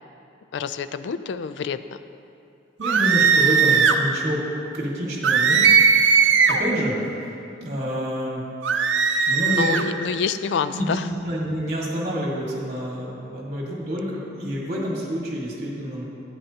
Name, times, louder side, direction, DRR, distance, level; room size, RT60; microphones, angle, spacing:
voice 1, 0.5-2.0 9.5-11.1, left 6 dB, 65° left, 12 dB, 0.3 m, -27 dB
voice 2, 2.8-4.5 4.7-7.1 7.6-8.5 9.3-9.8 10.7-11.0 11.2-16.0, equal, 40° right, -3 dB, 1.6 m, -28 dB
sound 1, 2.8-4.0 5.2-6.7 8.6-9.9, right 6 dB, 75° right, 0.5 m, -18 dB
12.5 x 9.1 x 2.8 m, 2.6 s
head